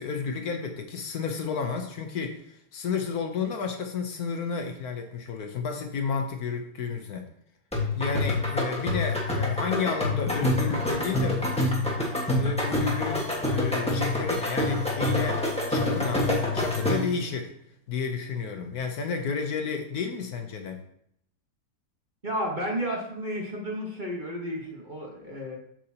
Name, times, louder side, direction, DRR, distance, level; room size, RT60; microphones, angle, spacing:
voice 1, 0.0-7.3 8.0-11.5 12.4-17.5 17.9-20.8, left 5 dB, 65° left, 4 dB, 1.2 m, -32 dB
sound 1, 7.7-17.2, left 2 dB, 5° left, 1.2 m, -27 dB
voice 2, 22.2-25.6, equal, 30° right, -2 dB, 1.3 m, -32 dB
7.6 x 6.9 x 2.9 m, 0.71 s
omnidirectional pair, 1.8 m